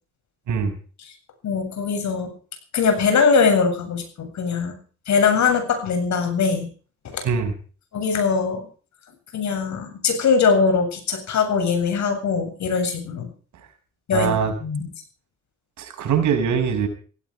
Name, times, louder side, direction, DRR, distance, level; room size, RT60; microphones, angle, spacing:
voice 1, 1.4-2.3 2.7-4.8 5.1-6.7 7.1-7.3 7.9-8.7 9.3-13.3 14.1-14.3 14.6-14.9, left 5 dB, 65° left, 7 dB, 7.8 m, -21 dB
voice 2, 14.1-14.5 15.8-16.9, right 7 dB, 75° right, 6 dB, 6.1 m, -22 dB
17.0 x 16.5 x 4.9 m, 0.40 s
cardioid pair, 90°, 30 cm